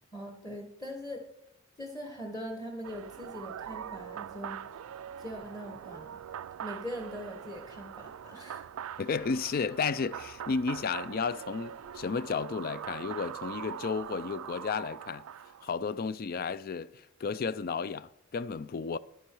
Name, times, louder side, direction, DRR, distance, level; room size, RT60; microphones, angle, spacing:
voice 1, 0.1-1.2 1.8-4.6 5.2-6.2 6.6-8.6, equal, 15° left, 1.3 m, -41 dB
sound 1, 2.8-15.8, right 9 dB, 85° right, 0.3 m, -43 dB
voice 2, 9.0-15.2 15.6-19.0, left 5 dB, 45° left, 0.4 m, -33 dB
10.5 x 10.0 x 4.6 m
head